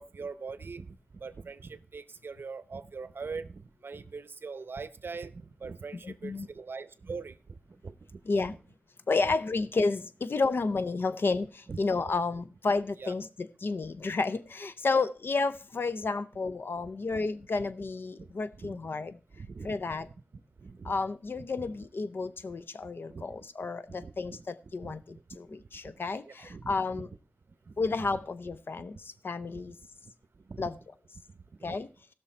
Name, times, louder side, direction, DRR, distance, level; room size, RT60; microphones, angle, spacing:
voice 1, 0.0-8.6 11.7-11.8 13.0-13.1 14.9-15.1 17.1-17.2 18.2-18.8 19.3-20.9 21.6-21.7 23.1-23.5 23.9-24.4 24.8-24.9 25.5-25.9 26.2-27.1 27.7-28.1 28.9-29.0 29.4-29.7 30.4-30.6 31.3-31.9, right 4 dB, 75° right, 0.8 m, -43 dB
voice 2, 6.0-6.5 8.3-8.5 9.1-19.1 19.6-20.1 20.8-25.5 25.7-27.1 27.8-29.8 30.6-30.7 31.6-31.9, left 3 dB, 70° left, 0.6 m, -31 dB
17.0 x 6.3 x 4.3 m
wide cardioid pair, 95°, 4 cm